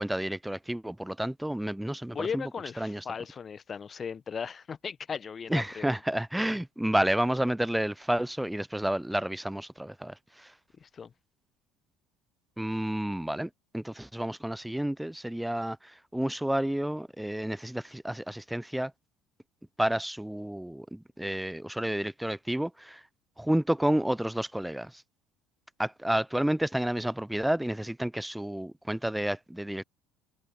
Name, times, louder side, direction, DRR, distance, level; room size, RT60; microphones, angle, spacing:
voice 1, 0.0-2.4 2.8-3.0 5.5-10.5 12.6-18.9 19.8-23.0 23.4-25.0 25.8-29.8, right 1 dB, 5° right, 0.4 m, -30 dB
voice 2, 2.1-6.0 10.8-11.1, left 6 dB, 30° left, 1.0 m, -37 dB
figure-of-eight pair, 60°, 0 cm